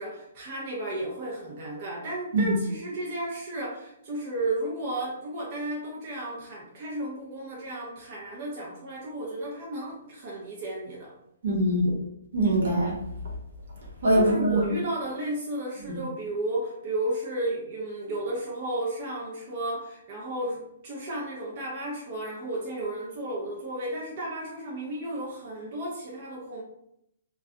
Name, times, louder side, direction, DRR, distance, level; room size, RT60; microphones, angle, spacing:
voice 1, 0.0-11.1 14.1-26.6, right 1 dB, 35° right, -4 dB, 0.6 m, -33 dB
voice 2, 11.4-11.9 12.3-12.9 14.0-14.7 15.9-16.0, right 1 dB, 65° right, -2 dB, 0.9 m, -23 dB
2.2 x 2.2 x 2.7 m, 0.76 s
hypercardioid pair, 155°, 0 cm